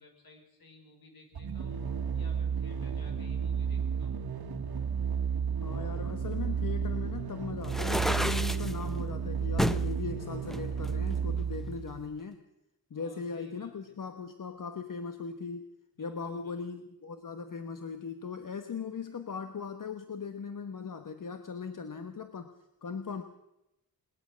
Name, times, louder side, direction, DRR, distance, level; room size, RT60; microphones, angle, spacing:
voice 1, 0.0-1.8 2.1-4.2 12.9-14.0 16.0-16.6, left 2 dB, 80° left, 4 dB, 5.2 m, -56 dB
sound 1, 1.3-12.1, right 6 dB, 85° right, 1.4 m, -32 dB
voice 2, 5.6-12.4 12.9-15.7 16.0-22.5 22.8-23.2, left 5 dB, 60° left, 8 dB, 1.2 m, -39 dB
sound 2, 7.6-8.7 9.6-9.9 10.5-11.6, equal, ahead, 0.7 m, -31 dB
20.5 x 20.0 x 6.3 m, 0.87 s
wide cardioid pair, 125°, 36 cm